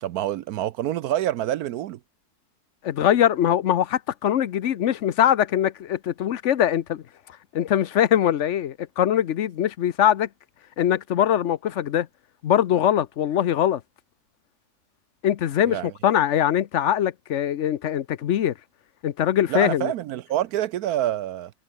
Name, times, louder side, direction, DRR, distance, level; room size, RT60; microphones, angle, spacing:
voice 1, 0.0-2.0 15.6-15.9 19.5-21.5, right 12 dB, 75° right, 1.1 m, -27 dB
voice 2, 2.8-10.3 10.8-12.1 12.4-13.8 15.2-18.5 19.0-19.9, left 10 dB, 55° left, 0.9 m, -22 dB
omnidirectional pair, 1.7 m